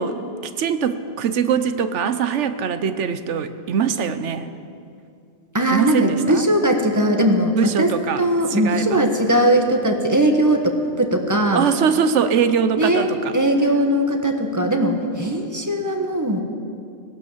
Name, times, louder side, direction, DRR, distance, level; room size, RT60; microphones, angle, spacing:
voice 1, 0.0-4.5 5.7-6.4 7.5-8.2 8.5-9.0 11.5-13.3, right 7 dB, 80° right, 11 dB, 1.1 m, -22 dB
voice 2, 5.5-7.9 8.2-11.6 12.8-16.4, right 1 dB, 15° right, 4 dB, 1.3 m, -19 dB
16.0 x 12.0 x 7.3 m, 2.5 s
omnidirectional pair, 1.2 m